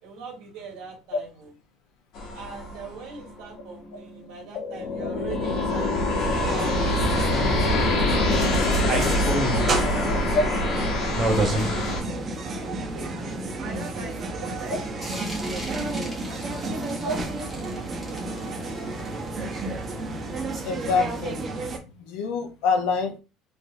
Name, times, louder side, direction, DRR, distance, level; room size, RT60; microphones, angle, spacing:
voice 1, 0.0-1.5 2.3-6.5 6.9-7.7 8.6-13.1 13.6-14.8 15.1-19.6 20.0-20.1, right 5 dB, 70° right, -2 dB, 1.6 m, -43 dB
sound 1, 2.2-12.0, left 1 dB, 50° left, 1.0 m, -25 dB
sound 2, 6.2-21.8, right 2 dB, 25° right, 0.6 m, -30 dB
sound 3, 15.0-20.3, equal, ahead, 0.9 m, -42 dB
voice 2, 20.6-21.4 21.8-23.2, left 4 dB, 80° left, 4 dB, 0.6 m, -25 dB
3.2 x 2.4 x 2.6 m, 0.31 s
cardioid pair, 170°, 0 cm